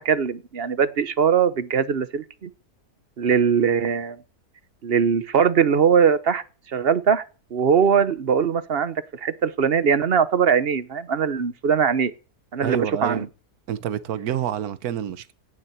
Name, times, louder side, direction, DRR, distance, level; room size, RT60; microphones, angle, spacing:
voice 1, 0.0-2.5 3.2-4.2 4.8-7.2 7.5-12.1 12.5-13.3, right 7 dB, 45° right, 1.1 m, -21 dB
voice 2, 12.6-13.3 13.7-15.3, right 10 dB, 75° right, 1.4 m, -28 dB
17.0 x 7.2 x 8.1 m
omnidirectional pair, 1.6 m